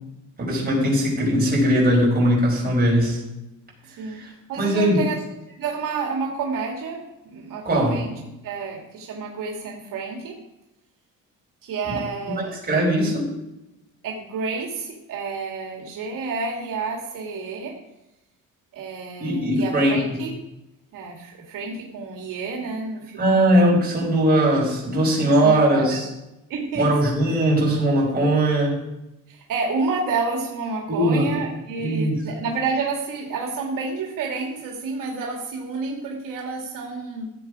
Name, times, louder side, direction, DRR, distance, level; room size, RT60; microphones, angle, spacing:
voice 1, 0.4-3.2 4.0-4.3 4.6-5.0 7.6-8.0 11.9-12.0 12.3-13.3 19.2-20.2 23.2-26.1 26.7-28.7 30.9-31.3 31.8-32.2, right 1 dB, 30° right, -4 dB, 5.9 m, -20 dB
voice 2, 3.8-4.2 4.5-5.2 5.5-10.4 11.6-12.6 14.0-17.8 18.7-20.3 20.9-23.5 25.4-26.0 26.5-26.9 29.3-37.3, right 4 dB, 80° right, -1 dB, 2.4 m, -29 dB
15.5 x 8.5 x 5.0 m, 0.91 s
cardioid pair, 140°, 32 cm